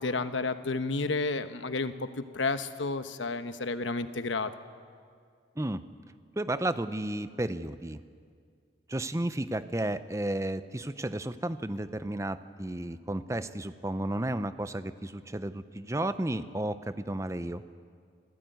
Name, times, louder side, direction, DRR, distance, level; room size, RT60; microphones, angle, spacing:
voice 1, 0.0-4.5, left 3 dB, 85° left, 10 dB, 1.1 m, -31 dB
voice 2, 6.4-8.0 8.9-17.6, right 1 dB, 15° right, 13 dB, 0.6 m, -33 dB
27.0 x 15.5 x 9.2 m, 2.2 s
head